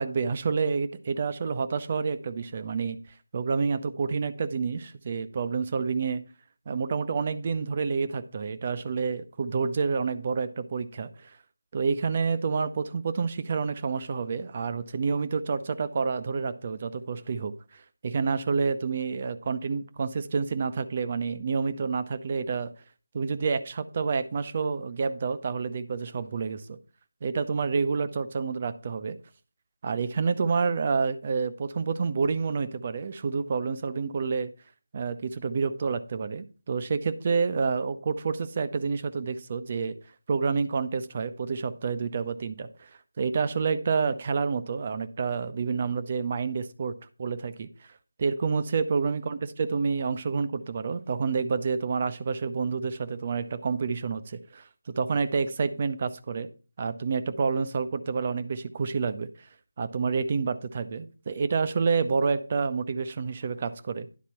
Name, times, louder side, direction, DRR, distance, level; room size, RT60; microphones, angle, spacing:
voice 1, 0.0-3.0 3.3-6.2 6.7-11.4 11.7-22.7 23.1-26.8 27.2-29.2 29.8-34.5 34.9-39.9 40.3-42.9 43.2-47.7 48.2-56.5 56.8-59.5 59.8-64.1, right 5 dB, 35° right, 11 dB, 0.6 m, -28 dB
10.5 x 4.1 x 5.7 m, 0.35 s
figure-of-eight pair, 160°, 0 cm